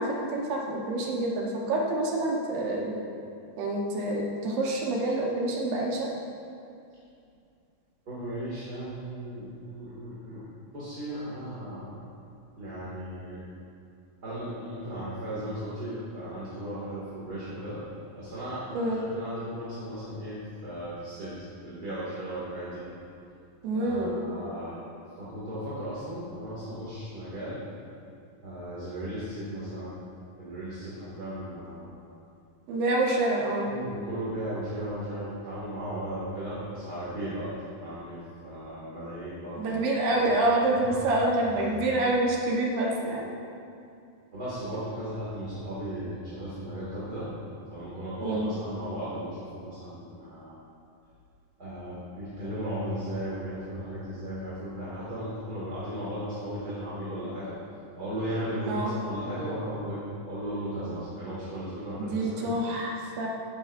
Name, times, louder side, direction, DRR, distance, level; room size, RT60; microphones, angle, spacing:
voice 1, 0.0-2.9 3.6-6.1 18.7-19.0 23.6-24.2 32.7-33.7 39.6-43.3 48.2-48.5 58.7-58.9 62.0-63.3, right 2 dB, 80° right, -2 dB, 3.2 m, -27 dB
voice 2, 8.1-10.4 10.7-11.9 12.6-13.4 14.2-17.8 18.2-22.8 23.7-24.7 25.2-27.6 28.4-29.9 30.4-31.9 33.6-37.5 37.8-39.8 40.2-40.3 40.7-40.9 41.5-41.8 44.3-47.3 47.7-50.6 51.6-57.5 58.0-62.5, right 1 dB, 30° right, -10 dB, 2.5 m, -36 dB
15.0 x 11.0 x 2.7 m, 2.5 s
omnidirectional pair, 4.1 m